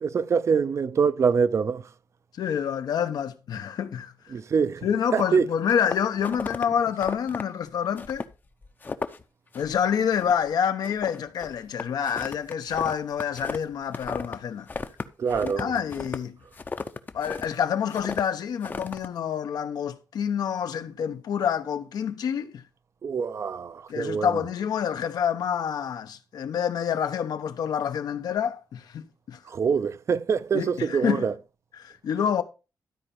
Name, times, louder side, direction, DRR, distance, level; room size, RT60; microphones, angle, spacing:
voice 1, 0.0-1.9 4.3-4.9 5.1-5.5 15.2-15.7 23.0-24.4 29.5-31.3, right 6 dB, 45° right, 0.6 m, -25 dB
voice 2, 2.4-4.3 4.8-8.2 9.5-14.7 15.4-16.4 17.1-22.6 23.9-29.4 30.5-31.3 31.7-32.4, left 8 dB, 80° left, 1.0 m, -27 dB
sound 1, 5.7-6.6 7.0-7.4 8.0-8.4 8.6-9.2 9.5-9.8 10.1-10.5 10.8-14.4 14.7-17.5 17.9-18.2 18.6-19.1, left 4 dB, 30° left, 0.7 m, -35 dB
12.5 x 4.5 x 5.3 m
wide cardioid pair, 135°, 7 cm